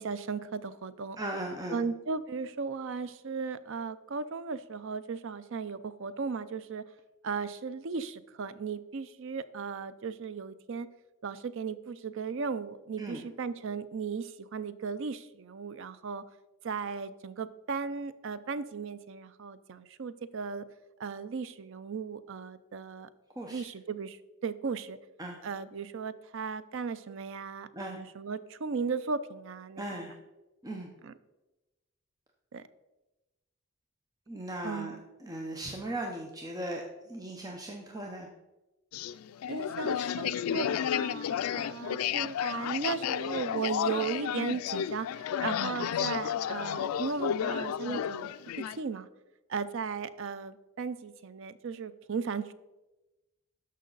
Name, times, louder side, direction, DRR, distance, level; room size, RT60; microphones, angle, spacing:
voice 1, 0.0-1.2 1.7-6.8 7.2-10.9 11.2-16.2 16.6-20.6 21.0-23.1 23.5-24.2 24.4-25.0 25.4-29.8 31.0-31.1 32.5-32.6 34.6-35.0 39.5-48.3 48.8-49.1 49.5-52.5, right 5 dB, 60° right, 14 dB, 0.5 m, -36 dB
voice 2, 1.2-1.8 13.0-13.2 23.4-23.6 25.2-25.4 27.7-28.0 29.8-30.2 30.6-30.9 34.3-38.3, right 1 dB, 15° right, 1 dB, 0.7 m, -38 dB
sound 1, 38.9-48.8, left 9 dB, 85° left, 0.3 m, -32 dB
13.0 x 5.5 x 4.0 m, 1.0 s
head